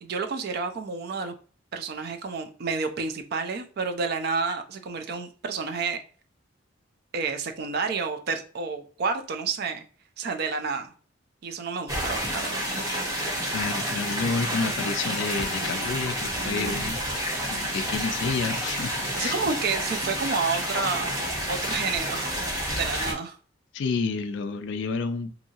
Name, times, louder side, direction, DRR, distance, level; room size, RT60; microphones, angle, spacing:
voice 1, 0.0-1.3 1.7-6.0 7.1-9.8 10.2-10.9 11.4-12.6 14.4-14.6 16.3-16.9 19.1-21.1 21.5-22.4 22.7-23.4, right 4 dB, 50° right, 7 dB, 0.3 m, -30 dB
sound 1, 11.9-23.1, equal, 15° right, 0.7 m, -29 dB
voice 2, 13.5-19.4 23.7-25.3, left 4 dB, 60° left, 9 dB, 0.3 m, -30 dB
2.7 x 2.6 x 2.7 m, 0.41 s
head